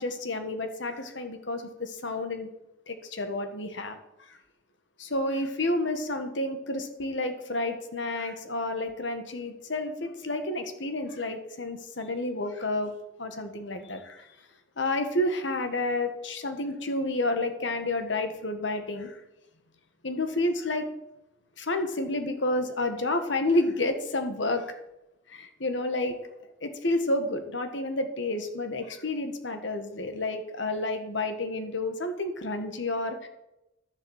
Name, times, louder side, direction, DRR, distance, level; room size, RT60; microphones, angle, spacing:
voice 1, 0.0-2.5 2.9-4.0 4.3-4.4 5.0-12.9 13.2-14.3 14.8-19.2 20.0-20.9 21.6-24.7 25.3-26.2 26.6-33.3, left 2 dB, 75° left, 7 dB, 1.7 m, -30 dB
12.0 x 7.5 x 7.4 m, 0.90 s
head